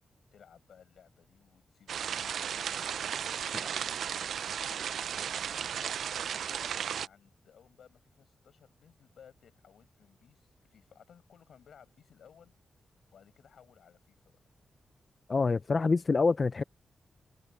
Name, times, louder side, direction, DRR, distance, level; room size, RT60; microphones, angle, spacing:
voice 1, 0.3-3.8 4.4-5.8 6.5-12.5 13.1-14.4, left 8 dB, 75° left, 5.3 m, -59 dB
sound 1, 1.9-7.1, right 8 dB, 90° right, 0.3 m, -35 dB
voice 2, 15.3-16.6, left 4 dB, 30° left, 0.4 m, -26 dB
wide cardioid pair, 165°, 0 cm